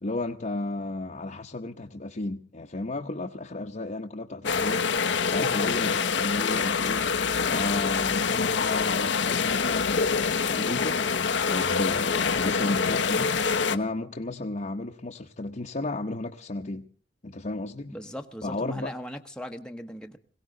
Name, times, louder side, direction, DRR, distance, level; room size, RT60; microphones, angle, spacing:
voice 1, 0.0-7.1 7.4-11.0 11.4-13.4 13.7-16.9 17.2-18.0 18.4-18.9, left 2 dB, 45° left, 0.9 m, -33 dB
sound 1, 4.4-13.8, left 5 dB, 75° left, 0.9 m, -25 dB
voice 2, 17.9-20.2, equal, 5° left, 0.9 m, -38 dB
21.5 x 17.0 x 3.9 m
head